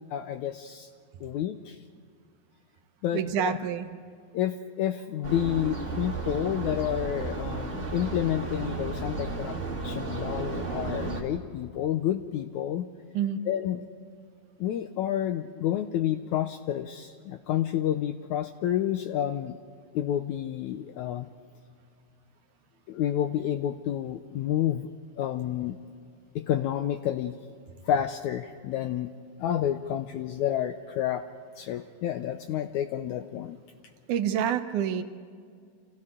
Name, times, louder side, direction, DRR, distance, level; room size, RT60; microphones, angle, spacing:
voice 1, 0.1-0.9 1.2-1.8 3.0-3.6 4.3-9.6 9.8-12.9 13.5-13.8 14.6-19.6 19.9-21.3 22.9-24.9 25.2-25.8 26.4-27.4 27.9-29.1 29.4-31.2 31.6-33.6, left 11 dB, 80° left, 8 dB, 1.7 m, -29 dB
voice 2, 3.1-3.9 13.1-13.4 34.1-35.0, right 9 dB, 70° right, 9 dB, 2.2 m, -27 dB
sound 1, 5.2-11.2, right 3 dB, 20° right, 2.2 m, -33 dB
30.0 x 27.0 x 3.7 m, 2.2 s
omnidirectional pair, 4.0 m